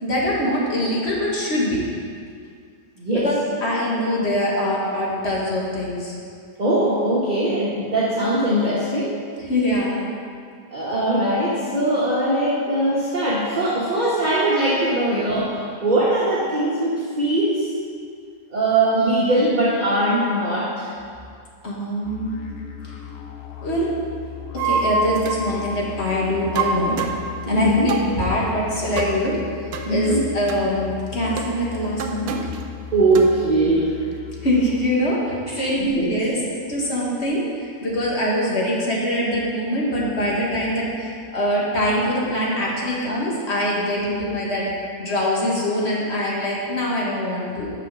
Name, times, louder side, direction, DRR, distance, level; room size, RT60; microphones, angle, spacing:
voice 1, 0.0-1.8 3.1-6.2 9.4-10.1 21.6-22.5 23.6-23.9 24.5-27.0 27.4-29.4 29.9-32.4 34.4-44.7 45.0-47.7, equal, 45° left, -4 dB, 1.8 m, -23 dB
voice 2, 3.0-3.3 6.6-9.1 10.7-15.5 15.8-17.6 18.5-20.9 27.5-27.9 29.9-30.2 32.9-33.9 35.6-35.7 36.0-36.1, right 1 dB, 30° right, -7 dB, 1.3 m, -20 dB
sound 1, 22.0-34.9, left 8 dB, 60° left, 0.6 m, -37 dB
sound 2, 24.6-25.5 26.6-27.3 27.9-28.1 29.0-29.2 29.7-29.9 30.5-30.6 31.4-31.5 32.0-32.6 33.1-33.3, right 5 dB, 80° right, 1.1 m, -25 dB
6.7 x 6.7 x 6.0 m, 2.2 s
omnidirectional pair, 1.6 m